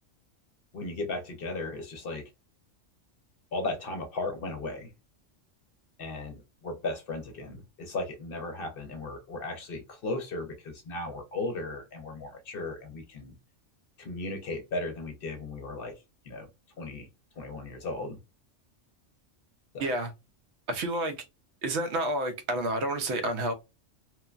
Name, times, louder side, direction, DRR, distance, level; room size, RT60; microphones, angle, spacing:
voice 1, 0.7-2.2 3.5-4.9 6.0-13.3 14.0-15.9 16.2-16.5 16.8-17.1 17.4-18.2 19.7-19.9, left 2 dB, 60° left, 0.7 m, -36 dB
voice 2, 19.8-20.1 20.7-21.2 21.6-23.5, right 1 dB, 70° right, 0.8 m, -29 dB
3.0 x 2.1 x 2.4 m
omnidirectional pair, 1.3 m